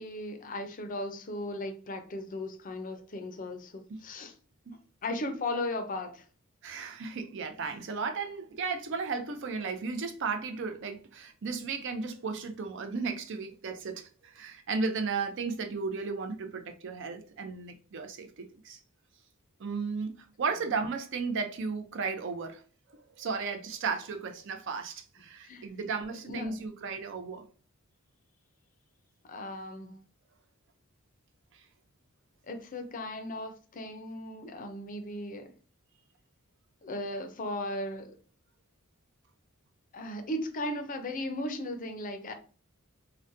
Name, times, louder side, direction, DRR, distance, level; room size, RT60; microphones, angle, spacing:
voice 1, 0.0-4.3 5.0-6.2 25.4-25.7 26.3-26.6 29.3-30.1 32.5-35.5 36.8-38.1 39.9-42.3, left 1 dB, 40° left, 0.5 m, -36 dB
voice 2, 6.6-18.8 19.6-22.6 22.9-27.4, right 4 dB, 60° right, 0.5 m, -35 dB
3.9 x 2.2 x 2.5 m
head